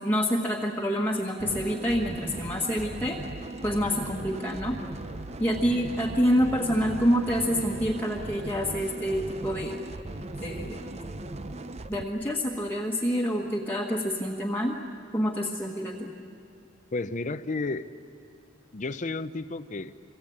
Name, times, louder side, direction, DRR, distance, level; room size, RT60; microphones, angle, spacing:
voice 1, 0.0-3.2 3.6-4.8 5.4-9.8 10.4-10.8 11.9-14.8 15.1-16.1, equal, 10° left, -2 dB, 1.5 m, -27 dB
sound 1, 1.4-12.0, right 2 dB, 35° right, 0.8 m, -38 dB
voice 2, 16.9-17.9 18.7-19.9, left 3 dB, 40° left, 10 dB, 0.6 m, -32 dB
26.5 x 24.5 x 8.7 m, 2.3 s
head